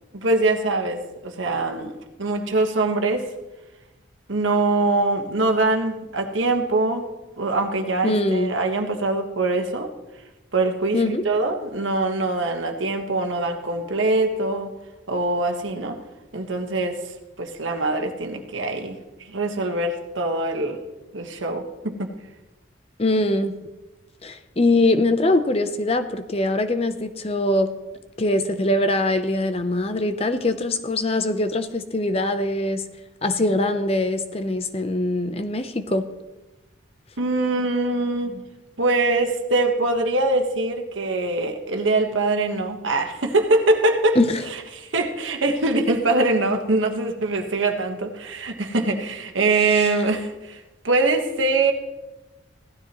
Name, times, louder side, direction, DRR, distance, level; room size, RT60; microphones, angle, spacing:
voice 1, 0.1-1.9 2.2-3.3 4.3-7.1 7.4-9.9 10.5-14.7 15.1-16.0 16.3-19.0 19.2-20.8 21.1-22.1 37.2-38.4 38.8-51.7, right 2 dB, 85° right, 4 dB, 1.4 m, -23 dB
voice 2, 8.0-8.5 10.9-11.2 23.0-23.5 24.2-27.7 28.2-32.8 33.2-36.1 44.2-44.3 49.6-50.0, left 2 dB, 30° left, 9 dB, 0.7 m, -22 dB
16.0 x 12.5 x 3.0 m, 1.1 s
head